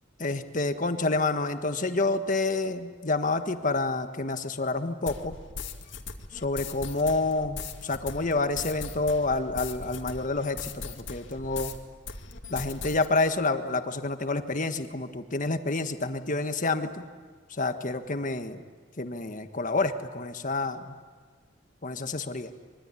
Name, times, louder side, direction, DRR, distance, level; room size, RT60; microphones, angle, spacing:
voice 1, 0.2-5.4 6.3-11.7 12.5-17.1 17.6-18.6 19.0-20.8 21.8-22.5, left 3 dB, 40° left, 8 dB, 1.5 m, -28 dB
sound 1, 5.1-11.8 12.1-13.1, left 4 dB, 65° left, 2.3 m, -39 dB
24.5 x 23.5 x 9.9 m, 1.5 s
head